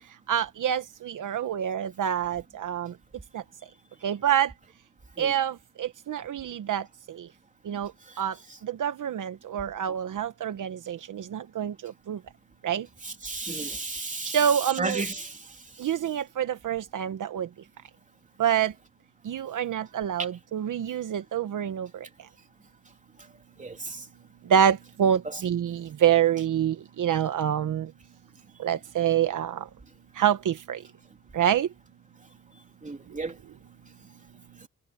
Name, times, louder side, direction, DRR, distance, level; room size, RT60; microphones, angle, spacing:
voice 1, 0.3-2.9 3.3-3.4 4.0-4.5 5.2-7.3 7.7-7.9 8.2-8.3 8.6-12.2 12.6-12.9 14.2-15.0 15.8-17.5 18.4-18.7 19.2-21.9 24.5-27.9 28.6-29.7 30.2-30.8 31.3-31.7, right 9 dB, 70° right, 1.1 m, -26 dB
voice 2, 13.0-14.4 14.8-15.3 23.6-24.0 32.8-33.3, right 3 dB, 25° right, 3.3 m, -33 dB
cardioid pair, 100°, 32 cm